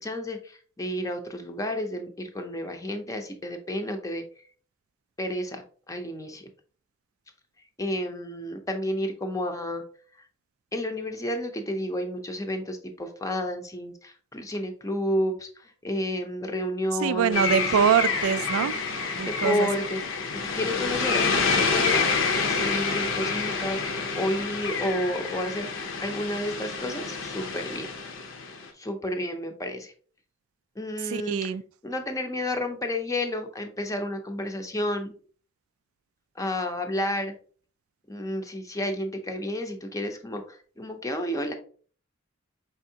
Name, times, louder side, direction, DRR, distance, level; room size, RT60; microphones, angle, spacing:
voice 1, 0.0-4.2 5.2-6.5 7.8-9.8 10.2-10.3 10.7-17.7 18.9-19.0 19.2-22.1 22.4-25.7 26.0-27.9 28.4-28.5 28.7-29.9 30.8-31.5 31.8-35.1 36.4-37.4 38.1-41.5, left 1 dB, 15° left, 0.6 m, -31 dB
voice 2, 17.0-18.8 19.2-19.7 31.1-31.6, right 7 dB, 90° right, 0.3 m, -24 dB
sound 1, 17.3-28.7, left 4 dB, 65° left, 0.7 m, -28 dB
5.0 x 3.5 x 2.7 m
head